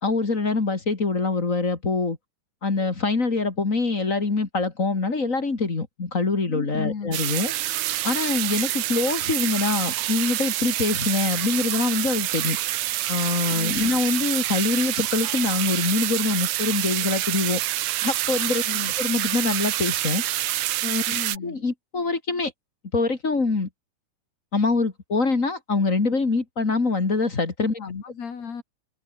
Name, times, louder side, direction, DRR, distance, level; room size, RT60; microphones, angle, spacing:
voice 1, 0.0-2.2 2.6-7.5 8.0-12.6 13.1-17.6 18.0-18.6 19.0-20.2 20.8-21.0 21.4-22.5 22.9-23.7 24.5-27.8, left 3 dB, 25° left, 2.5 m, -24 dB
voice 2, 6.5-7.2 13.6-14.0 18.7-18.9 21.1-21.6 27.8-28.6, left 6 dB, 55° left, 4.5 m, -35 dB
sound 1, 7.1-21.4, right 14 dB, 70° right, 2.0 m, -27 dB
omnidirectional pair, 3.6 m